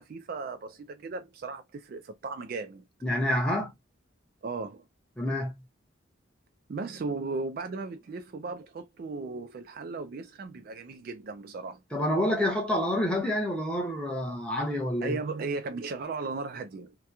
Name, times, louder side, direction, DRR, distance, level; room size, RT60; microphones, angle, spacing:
voice 1, 0.0-2.8 4.4-4.8 6.7-11.8 15.0-17.0, right 3 dB, 45° right, 0.3 m, -36 dB
voice 2, 3.0-3.7 5.2-5.6 11.9-15.2, left 1 dB, 5° left, 0.7 m, -28 dB
2.9 x 2.2 x 2.2 m
head